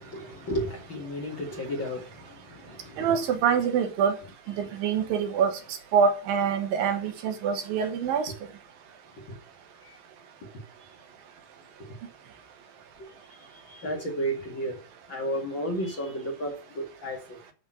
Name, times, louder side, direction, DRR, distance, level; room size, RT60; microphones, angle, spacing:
voice 1, 0.0-3.1 9.3-9.4 9.8-10.0 13.0-13.1 13.7-14.8 15.1-17.4, equal, 65° left, 1.2 m, -33 dB
voice 2, 3.0-4.2 4.6-5.5 5.9-8.3, right 7 dB, 65° right, 2.4 m, -25 dB
12.0 x 4.1 x 7.5 m
omnidirectional pair, 5.5 m